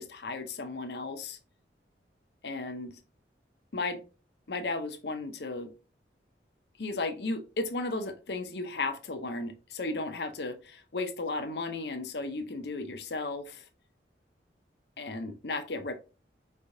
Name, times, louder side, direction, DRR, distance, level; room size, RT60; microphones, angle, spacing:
voice 1, 0.0-1.4 2.4-3.0 3.7-4.0 4.5-5.7 6.8-13.7 15.0-15.9, left 3 dB, 70° left, 7 dB, 0.7 m, -35 dB
4.6 x 3.3 x 2.6 m, 0.32 s
head